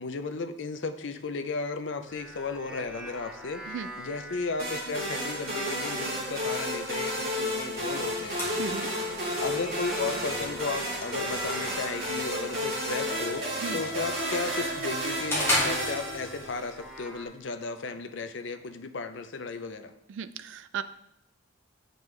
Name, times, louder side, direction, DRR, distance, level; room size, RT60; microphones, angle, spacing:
voice 1, 0.0-3.6 4.0-8.4 9.4-19.9, left 4 dB, 65° left, 8 dB, 0.5 m, -34 dB
sound 1, 2.1-13.4 13.9-17.3, equal, 5° right, 0.6 m, -45 dB
sound 2, 4.6-16.8, equal, 50° right, 2.3 m, -32 dB
sound 3, 7.5-16.5, left 1 dB, 15° left, 1.7 m, -37 dB
voice 2, 8.6-8.9 13.6-13.8 20.1-20.8, right 7 dB, 70° right, 14 dB, 0.3 m, -36 dB
7.8 x 5.2 x 3.2 m, 0.80 s
head